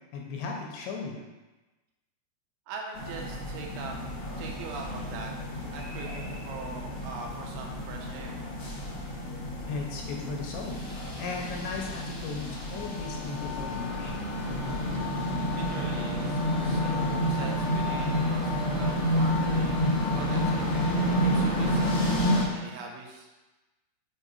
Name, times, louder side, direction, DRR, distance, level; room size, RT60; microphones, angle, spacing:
voice 1, 0.1-1.2 9.7-10.8 11.2-14.2, left 4 dB, 85° left, 0 dB, 2.7 m, -36 dB
voice 2, 2.7-4.0 4.4-5.3 5.7-8.4 15.6-20.9 21.2-21.9 22.5-23.3, right 5 dB, 90° right, 1 dB, 3.2 m, -42 dB
sound 1, 2.9-22.4, equal, 65° left, 1.4 m, -29 dB
7.3 x 2.8 x 5.2 m, 1.1 s
omnidirectional pair, 5.2 m